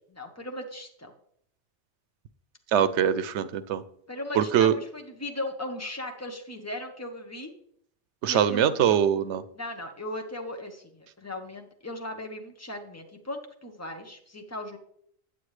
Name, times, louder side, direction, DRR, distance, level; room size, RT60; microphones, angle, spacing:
voice 1, 0.1-1.1 4.1-7.5 8.2-9.0 9.5-14.8, left 1 dB, 15° left, 3 dB, 0.9 m, -37 dB
voice 2, 2.7-3.8 4.3-4.7 8.2-9.4, right 9 dB, 85° right, 13 dB, 0.9 m, -23 dB
8.7 x 7.8 x 3.2 m, 0.68 s
omnidirectional pair, 1.1 m